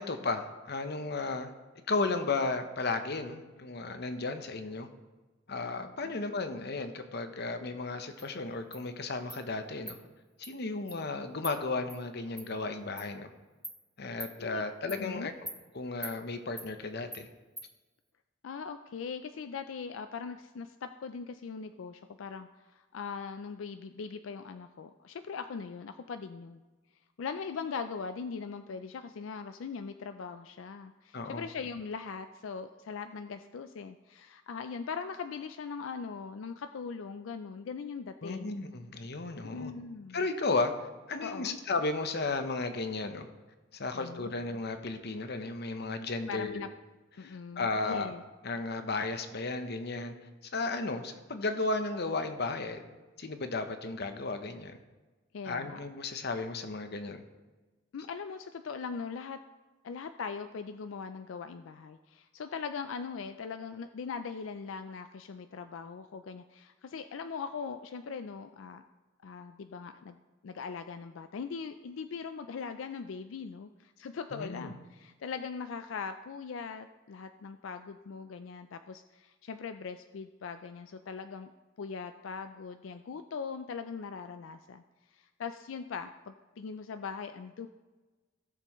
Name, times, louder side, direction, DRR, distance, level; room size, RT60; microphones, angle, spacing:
voice 1, 0.0-1.5 1.9-4.9 5.5-10.0 10.4-13.3 14.0-15.3 15.7-17.3 31.1-31.4 38.2-39.7 40.1-40.7 41.1-43.3 43.7-46.6 47.2-48.1 48.4-50.2 50.5-52.8 53.2-54.8 55.4-57.2 74.3-74.7, left 3 dB, 55° left, 8 dB, 0.9 m, -34 dB
Insect, 8.2-8.3 8.7-8.8 9.3-9.4 9.9-10.0 10.4-10.5 10.9-11.0 11.4-11.5 11.9-12.0 12.4-12.5 13.0-13.1 13.6-13.8 14.2-14.3 14.9-15.0 15.5-15.6 16.0-16.2 16.6-16.7 17.1-17.2 17.6-17.7, right 1 dB, ahead, 1.2 m, -42 dB
voice 2, 15.0-15.3 18.4-26.6 27.2-38.6 39.4-40.2 41.2-41.6 43.9-44.3 46.3-46.7 47.2-48.2 55.3-55.8 57.9-59.4 59.8-68.8 69.2-70.2 70.4-81.5 81.8-84.8 85.1-87.7, left 5 dB, 85° left, 9 dB, 0.4 m, -40 dB
16.5 x 6.8 x 3.1 m, 1.2 s
head